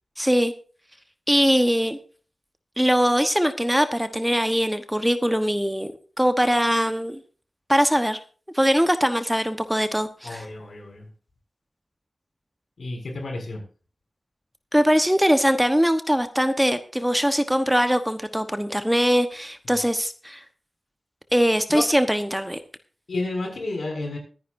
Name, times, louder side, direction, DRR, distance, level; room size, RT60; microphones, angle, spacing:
voice 1, 0.2-0.5 1.3-2.0 2.8-5.9 6.2-7.2 7.7-8.2 8.5-10.4 14.7-20.4 21.3-22.6, equal, 5° right, 8 dB, 1.1 m, -21 dB
voice 2, 10.2-11.1 12.8-13.7 19.6-19.8 21.7-21.8 23.1-24.2, left 2 dB, 80° left, 1 dB, 6.6 m, -31 dB
23.0 x 10.0 x 2.7 m, 0.38 s
wide cardioid pair, 100°, 0 cm